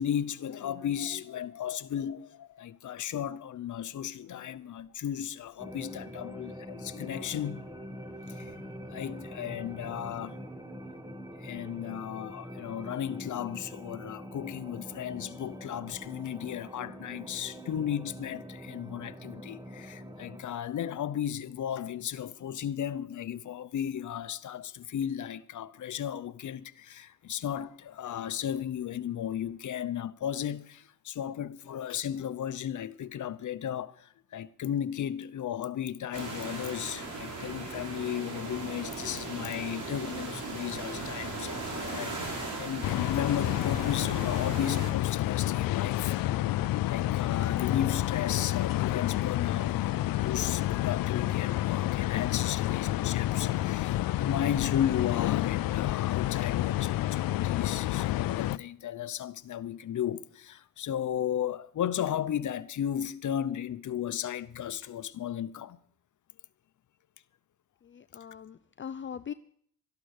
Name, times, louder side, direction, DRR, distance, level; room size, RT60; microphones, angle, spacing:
voice 1, 0.0-7.7 8.3-8.6 8.9-10.4 11.4-46.1 46.8-65.8, left 10 dB, 60° left, 0.8 m, -35 dB
sound 1, 5.6-20.4, equal, 10° right, 1.8 m, -44 dB
sound 2, 36.1-44.9, right 2 dB, 60° right, 5.0 m, -38 dB
sound 3, 42.8-58.6, left 15 dB, 85° left, 0.5 m, -29 dB
voice 2, 67.8-69.3, left 8 dB, 35° left, 0.5 m, -41 dB
13.0 x 12.0 x 6.5 m
cardioid pair, 85°, 33 cm